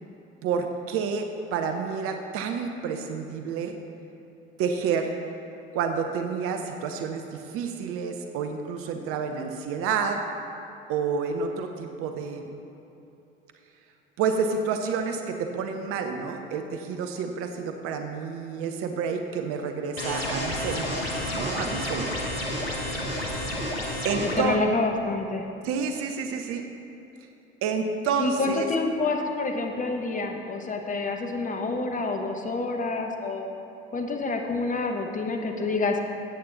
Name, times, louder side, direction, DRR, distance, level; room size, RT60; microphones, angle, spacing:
voice 1, 0.4-3.7 4.6-5.1 5.7-10.2 10.9-12.4 14.2-20.9 21.3-22.1 23.3-23.8 24.0-24.6 25.6-26.6 27.6-28.7, right 5 dB, 50° right, 5 dB, 0.8 m, -29 dB
sound 1, 20.0-24.4, left 1 dB, 85° left, 1.4 m, -30 dB
voice 2, 24.3-25.5 28.2-33.5 33.9-36.0, left 3 dB, 25° left, 3 dB, 1.2 m, -28 dB
14.0 x 8.6 x 4.0 m, 3.0 s
figure-of-eight pair, 60°, 30 cm